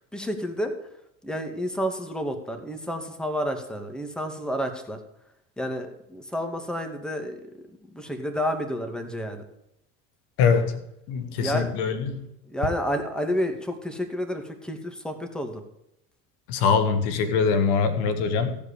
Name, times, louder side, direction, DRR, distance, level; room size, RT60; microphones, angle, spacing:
voice 1, 0.1-0.7 1.2-5.0 5.6-7.4 7.9-9.4 11.4-11.7 12.5-15.6, equal, ahead, 5 dB, 2.3 m, -30 dB
voice 2, 10.4-10.8 11.1-12.3 16.5-18.6, left 5 dB, 75° left, 9 dB, 1.7 m, -23 dB
15.5 x 5.3 x 8.8 m, 0.82 s
hypercardioid pair, 70°, 40 cm